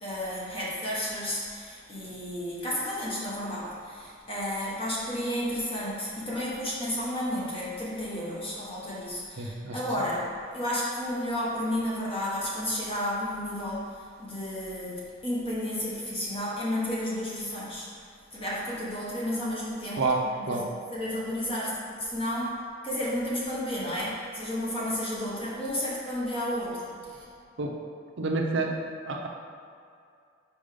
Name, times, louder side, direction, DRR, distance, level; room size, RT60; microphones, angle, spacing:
voice 1, 0.0-17.9 18.3-20.1 20.3-21.7 22.0-22.5 22.8-27.2, left 1 dB, 30° left, -7 dB, 1.3 m, -32 dB
voice 2, 9.4-9.8 20.0-20.6 27.6-27.8 28.2-29.3, right 3 dB, 65° right, 1 dB, 0.7 m, -29 dB
5.2 x 4.9 x 5.1 m, 2.3 s
head